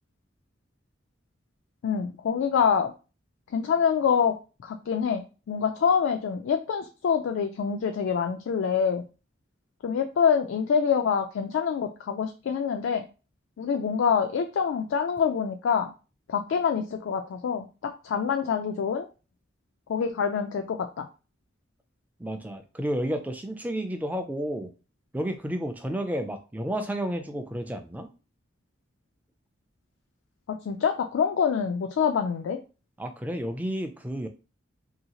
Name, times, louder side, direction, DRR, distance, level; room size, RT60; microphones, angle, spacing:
voice 1, 1.8-2.9 3.5-4.3 4.6-9.0 9.8-13.0 13.6-15.9 16.3-17.7 18.0-19.1 19.9-21.1 30.5-32.6, left 6 dB, 85° left, 5 dB, 0.3 m, -26 dB
voice 2, 22.2-24.7 25.1-28.1 33.0-34.3, equal, 10° right, 6 dB, 0.3 m, -31 dB
2.8 x 2.6 x 2.8 m, 0.32 s
head